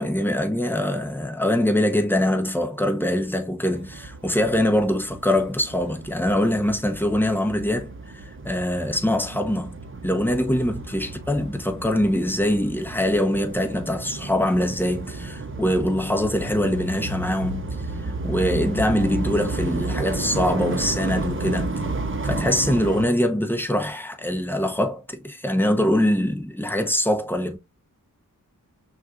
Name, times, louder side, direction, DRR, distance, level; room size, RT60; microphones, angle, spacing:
voice 1, 0.0-9.8 10.0-17.7 18.0-21.8 22.2-27.6, left 1 dB, 5° left, 1.0 m, -23 dB
sound 1, 3.7-23.0, right 3 dB, 35° right, 0.8 m, -32 dB
6.1 x 2.5 x 2.5 m
wide cardioid pair, 75°, 34 cm